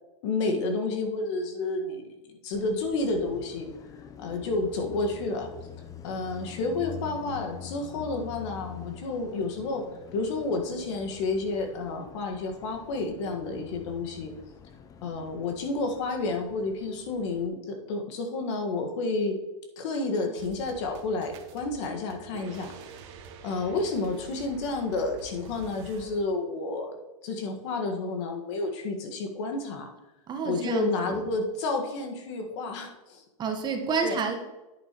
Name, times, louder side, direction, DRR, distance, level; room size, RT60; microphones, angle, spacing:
voice 1, 0.2-3.7 4.2-5.5 6.0-9.8 10.1-14.3 15.0-19.4 19.8-22.7 23.4-27.0 27.2-29.9 30.4-33.2 34.0-34.2, left 3 dB, 60° left, 3 dB, 1.8 m, -30 dB
Car passing by, 2.5-17.5, left 7 dB, 20° left, 0.6 m, -46 dB
sound 1, 20.4-26.2, right 5 dB, 55° right, 1.5 m, -47 dB
voice 2, 30.3-31.2 33.4-34.4, right 5 dB, 25° right, 4 dB, 1.4 m, -29 dB
10.0 x 8.8 x 3.1 m, 1.1 s
hypercardioid pair, 125°, 17 cm